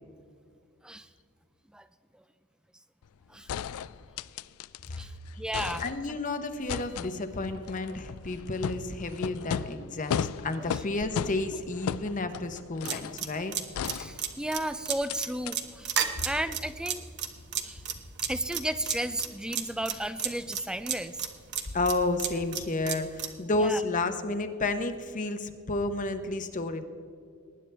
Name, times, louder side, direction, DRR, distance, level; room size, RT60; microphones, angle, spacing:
sound 1, 3.0-3.1 3.5-5.0 5.3-6.3 6.7-13.2 13.7-14.6 15.1-15.2 15.5-15.6, left 8 dB, 80° left, 0.4 m, -36 dB
voice 1, 4.9-5.8 10.6-10.8 11.5-11.6 11.9-12.0 13.9-16.0 16.2-17.0 17.6-17.8 18.2-21.3 23.5-23.8, right 1 dB, 5° right, 12 dB, 0.3 m, -34 dB
voice 2, 5.8-13.5 21.7-26.8, left 2 dB, 35° left, 9 dB, 0.8 m, -31 dB
sound 2, 12.9-23.3, right 9 dB, 50° right, 1.1 m, -32 dB
19.5 x 9.7 x 3.4 m, 2.3 s
head